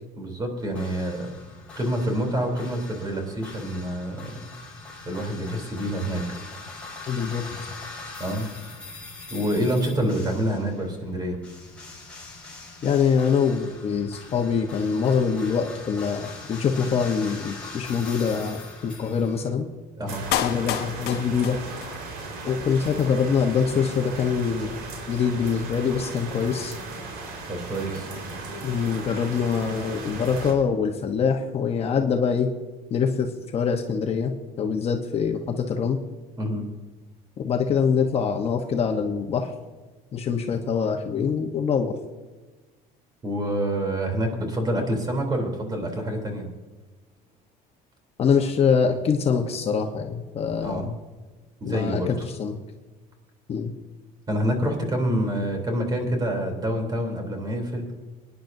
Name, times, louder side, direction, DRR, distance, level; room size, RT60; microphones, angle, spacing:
voice 1, 0.2-1.3 1.7-4.5 5.0-6.4 8.2-8.5 9.3-11.4 20.0-20.2 27.5-28.1 36.4-36.6 43.2-46.5 50.6-50.8 51.6-52.2 54.3-57.9, equal, 25° right, 3 dB, 3.3 m, -27 dB
sound 1, 0.6-19.5, left 3 dB, 5° left, 4.5 m, -42 dB
voice 2, 7.1-7.6 12.8-19.7 20.4-21.6 22.4-24.7 25.1-26.8 28.6-32.5 32.9-36.0 37.4-39.5 40.1-42.0 48.2-50.9 51.7-52.6 53.5-53.7, left 6 dB, 35° left, 3 dB, 1.0 m, -24 dB
sound 2, 20.1-30.5, right 3 dB, 75° right, 4.4 m, -37 dB
Clapping, 20.3-22.3 22.6-22.7, left 13 dB, 70° left, 0.9 m, -29 dB
24.0 x 10.5 x 2.7 m, 1.3 s
cardioid pair, 135°, 17 cm